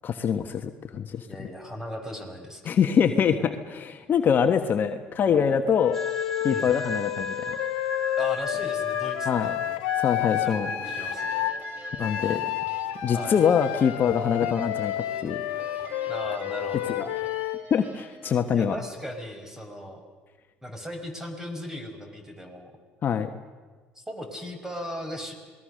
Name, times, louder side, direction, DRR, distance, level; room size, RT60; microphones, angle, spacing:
voice 1, 0.0-1.5 2.6-6.0 6.4-7.5 9.2-9.5 10.0-10.7 12.0-12.5 13.0-15.4 15.7-16.0 17.0-17.1 17.7-18.7 23.0-23.3, left 7 dB, 45° left, 7 dB, 1.3 m, -24 dB
voice 2, 1.3-2.8 6.5-6.7 8.2-9.8 10.4-11.4 13.1-13.4 16.1-17.0 18.5-20.0 20.6-22.7 24.0-25.3, equal, 10° right, 5 dB, 5.3 m, -37 dB
Wind instrument woodwind instrument, 5.8-11.6 12.0-17.6, left 15 dB, 85° left, 0.9 m, -30 dB
sound 1, 5.9-12.4, left 2 dB, 10° left, 2.8 m, -36 dB
sound 2, 10.5-18.4, right 2 dB, 35° right, 3.4 m, -45 dB
27.0 x 19.5 x 6.5 m, 1.4 s
supercardioid pair, 75°, 5 cm